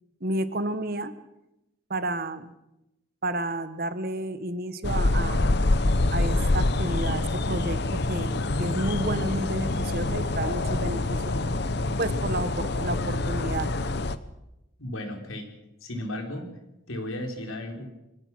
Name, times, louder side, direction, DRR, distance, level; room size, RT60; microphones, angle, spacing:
voice 1, 0.2-1.1 1.9-2.5 3.2-5.5 6.1-7.8 8.1-11.3 12.0-13.7, right 1 dB, 45° right, 12 dB, 1.3 m, -31 dB
sound 1, 4.8-14.2, left 2 dB, 50° left, 0.9 m, -26 dB
voice 2, 14.8-15.5 15.8-16.6 16.9-17.8, left 1 dB, 80° left, 3 dB, 4.1 m, -34 dB
24.5 x 17.0 x 6.3 m, 0.92 s
head